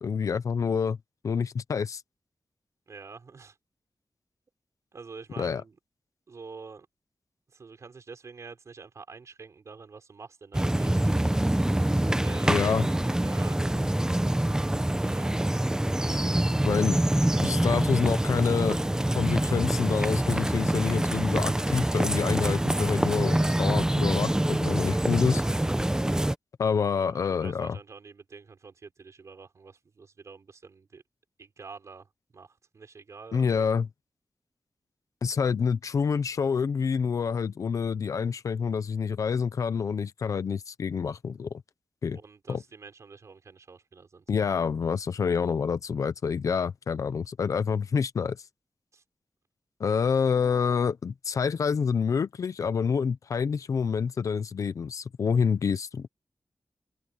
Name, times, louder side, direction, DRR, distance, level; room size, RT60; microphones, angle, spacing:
voice 1, 0.0-1.0 1.2-2.0 5.4-5.6 12.5-12.9 16.6-25.4 26.6-27.8 33.3-33.9 35.2-41.5 42.0-42.2 42.5-42.6 44.3-48.4 49.8-56.1, left 6 dB, 80° left, 0.8 m, -27 dB
voice 2, 2.9-3.6 4.9-5.8 6.3-6.9 7.5-11.0 12.1-13.6 15.0-15.5 27.0-31.0 31.4-32.1 32.3-33.7 42.1-44.2 48.9-49.0, right 4 dB, 65° right, 5.0 m, -47 dB
sound 1, 10.5-26.3, right 1 dB, 10° right, 0.9 m, -25 dB
open air
wide cardioid pair, 70°, 6 cm